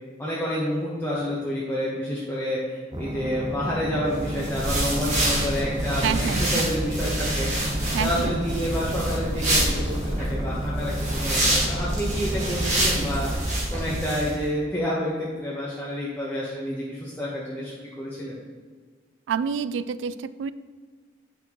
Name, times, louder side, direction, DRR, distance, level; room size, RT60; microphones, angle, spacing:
voice 1, 0.2-7.5 8.0-18.4, equal, 10° left, -7 dB, 1.0 m, -29 dB
sound 1, 2.9-13.4, right 1 dB, 20° right, 0.6 m, -33 dB
sound 2, 4.1-14.3, right 1 dB, 40° right, 1.9 m, -26 dB
voice 2, 6.0-6.7 7.9-8.3 19.3-20.5, right 7 dB, 80° right, 15 dB, 0.3 m, -28 dB
9.0 x 6.0 x 3.0 m, 1.5 s
head